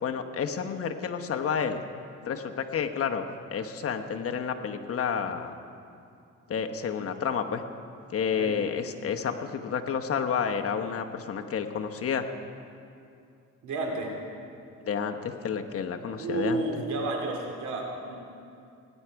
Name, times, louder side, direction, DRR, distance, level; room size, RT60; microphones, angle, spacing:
voice 1, 0.0-1.8 2.2-5.5 6.5-7.6 8.1-12.3 14.9-16.6, left 7 dB, 50° left, 5 dB, 1.1 m, -30 dB
voice 2, 13.6-14.1 16.2-18.1, right 2 dB, 70° right, 1 dB, 2.6 m, -31 dB
18.5 x 10.0 x 4.7 m, 2.5 s
cardioid pair, 90°, 30 cm